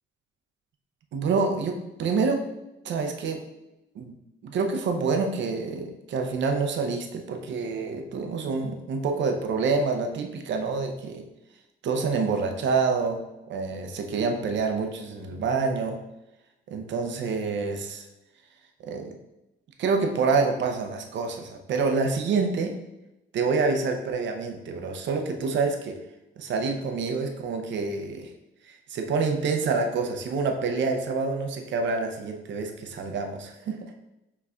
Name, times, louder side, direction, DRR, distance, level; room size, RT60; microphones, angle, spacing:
voice 1, 1.1-2.4 2.8-3.4 3.9-4.1 4.4-11.2 11.8-13.2 13.5-16.0 16.7-18.0 18.8-19.1 19.8-22.7 23.3-25.9 26.4-28.3 28.7-33.8, right 4 dB, 65° right, 4 dB, 0.7 m, -27 dB
5.8 x 3.1 x 2.4 m, 0.93 s
cardioid pair, 90°, 20 cm